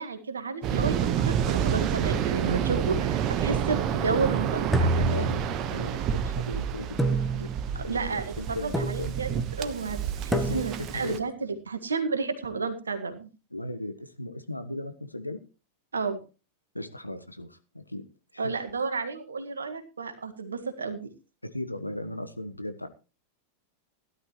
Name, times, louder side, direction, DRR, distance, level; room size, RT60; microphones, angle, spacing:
voice 1, 0.0-5.3 7.7-13.3 15.9-16.2 18.4-21.1, right 4 dB, 75° right, 9 dB, 1.7 m, -32 dB
Waves surf, 0.6-11.2, right 8 dB, 35° right, 1.2 m, -29 dB
sound 1, 4.7-5.9 7.0-7.8 8.7-9.4 10.3-11.0, right 1 dB, ahead, 1.2 m, -28 dB
voice 2, 5.0-7.5 7.9-9.1 10.3-11.2 13.5-15.4 16.7-18.0 18.3-18.6 21.4-22.9, left 1 dB, 85° left, 9 dB, 1.2 m, -37 dB
17.0 x 11.5 x 3.1 m, 0.32 s
figure-of-eight pair, 90°, 0 cm